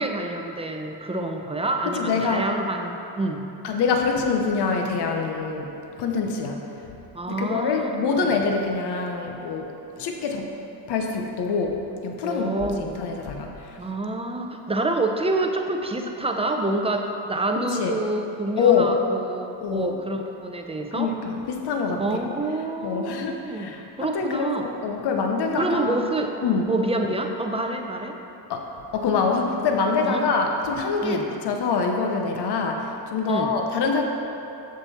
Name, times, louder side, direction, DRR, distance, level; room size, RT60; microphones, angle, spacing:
voice 1, 0.0-3.4 7.1-8.3 12.2-13.0 13.8-21.1 22.0-23.7 24.0-24.7 25.6-26.3 26.7-28.2 30.1-30.2 31.0-31.3 33.3-33.5, right 2 dB, 15° right, 4 dB, 0.5 m, -27 dB
voice 2, 1.8-2.5 3.6-5.7 6.0-6.6 7.3-10.5 10.9-13.8 17.7-17.9 18.6-19.0 19.6-20.0 20.9-22.3 22.8-26.0 26.4-26.7 28.5-28.7 28.9-34.0, left 5 dB, 60° left, 3 dB, 0.9 m, -25 dB
7.7 x 6.6 x 4.2 m, 3.0 s
cardioid pair, 105°, 45 cm